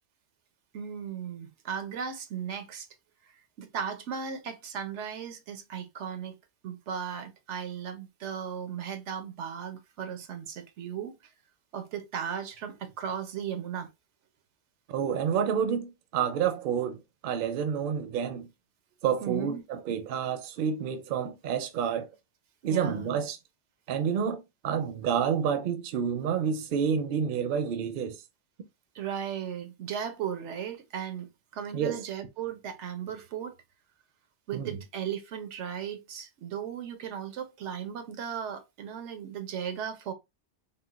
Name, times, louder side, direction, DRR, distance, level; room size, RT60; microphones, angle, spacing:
voice 1, 0.7-2.9 3.6-6.4 6.6-11.2 11.7-13.9 19.2-19.6 22.7-23.1 28.9-33.5 34.5-40.1, right 8 dB, 85° right, 0.9 m, -36 dB
voice 2, 14.9-18.5 19.0-22.1 22.6-23.4 23.9-28.2 31.7-32.0 34.5-34.8, right 7 dB, 60° right, 0.6 m, -29 dB
3.8 x 2.2 x 2.3 m
omnidirectional pair, 1.2 m